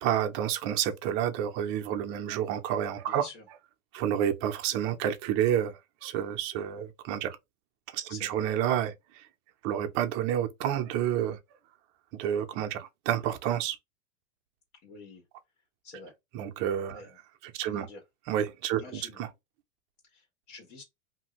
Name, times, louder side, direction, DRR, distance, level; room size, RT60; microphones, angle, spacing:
voice 1, 0.0-3.3 3.9-5.7 6.0-7.4 7.9-8.9 9.6-11.4 12.2-13.8 16.3-17.0 17.6-17.9 18.3-19.0, right 10 dB, 30° right, 0.5 m, -29 dB
voice 2, 3.1-3.5 8.1-8.5 14.8-15.2 15.8-16.1 16.9-17.2 17.6-18.0 18.7-19.2 20.0-20.8, left 3 dB, 70° left, 1.5 m, -47 dB
2.6 x 2.6 x 3.0 m
supercardioid pair, 140°, 39 cm